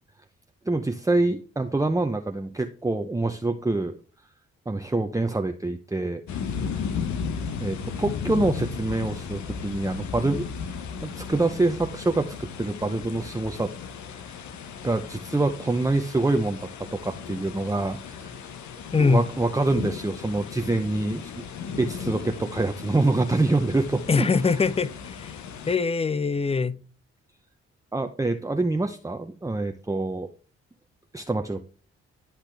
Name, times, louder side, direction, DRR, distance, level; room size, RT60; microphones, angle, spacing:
voice 1, 0.7-4.0 4.7-6.2 7.6-10.5 11.0-13.7 14.8-18.3 19.0-21.3 21.8-24.3 27.9-30.3 31.1-31.6, right 2 dB, 10° right, 0.8 m, -26 dB
sound 1, 6.3-25.8, left 6 dB, 75° left, 1.1 m, -35 dB
voice 2, 18.9-19.3 24.1-25.4 25.7-26.8, left 4 dB, 20° left, 0.6 m, -23 dB
12.0 x 5.8 x 3.4 m
supercardioid pair, 45°, 29 cm